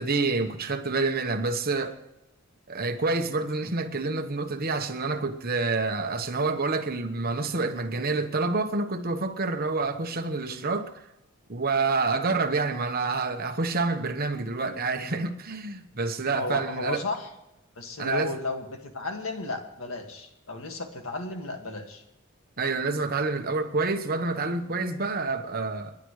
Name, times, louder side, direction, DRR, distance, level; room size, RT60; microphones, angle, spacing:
voice 1, 0.0-2.0 2.7-10.9 11.5-17.0 18.0-18.3 22.6-26.0, right 3 dB, 45° right, 1.2 m, -28 dB
voice 2, 16.3-17.3 17.8-22.0, left 3 dB, 75° left, 2.0 m, -34 dB
29.5 x 11.0 x 3.2 m
head